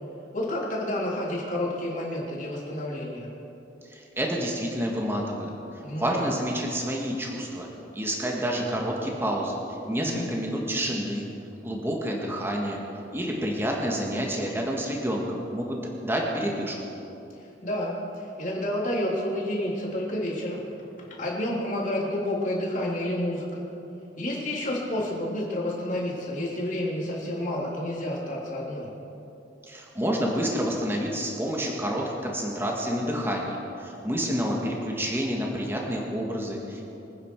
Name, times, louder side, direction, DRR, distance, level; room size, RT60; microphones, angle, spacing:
voice 1, 0.3-3.3 5.8-6.3 9.9-10.3 17.6-20.6 21.2-23.5 24.2-28.9, left 1 dB, 45° left, -4 dB, 3.4 m, -30 dB
voice 2, 3.9-5.5 5.9-7.7 7.9-9.6 9.9-11.3 11.6-12.8 13.1-16.8 29.6-36.8, equal, 15° right, -1 dB, 1.8 m, -29 dB
25.5 x 9.8 x 4.8 m, 2.9 s
head